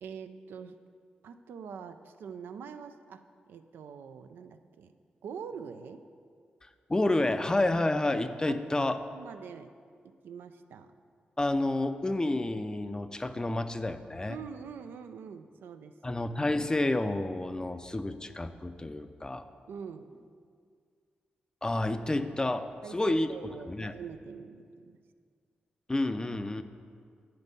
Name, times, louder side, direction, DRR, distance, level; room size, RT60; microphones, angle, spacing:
voice 1, 0.0-0.7 1.2-3.2 3.5-4.9 5.2-6.0 8.5-9.7 10.0-10.9 14.3-16.2 19.7-20.1 22.8-25.0, right 6 dB, 80° right, 9 dB, 0.4 m, -44 dB
voice 2, 6.9-9.0 11.4-14.4 16.0-19.4 21.6-23.3 23.7-23.9 25.9-26.6, left 2 dB, 20° left, 10 dB, 0.4 m, -29 dB
9.0 x 5.3 x 4.1 m, 2.1 s
cardioid pair, 55°, 3 cm